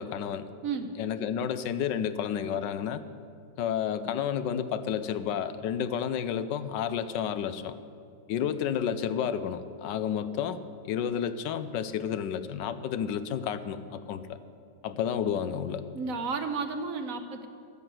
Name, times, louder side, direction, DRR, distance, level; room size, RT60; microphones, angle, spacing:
voice 1, 0.0-0.5 1.0-3.0 3.6-7.8 8.3-10.6 10.8-14.4 14.8-15.8, left 8 dB, 85° left, 11 dB, 1.3 m, -31 dB
voice 2, 15.9-17.5, right 5 dB, 60° right, 7 dB, 1.1 m, -32 dB
12.5 x 9.0 x 7.9 m, 2.3 s
omnidirectional pair, 1.9 m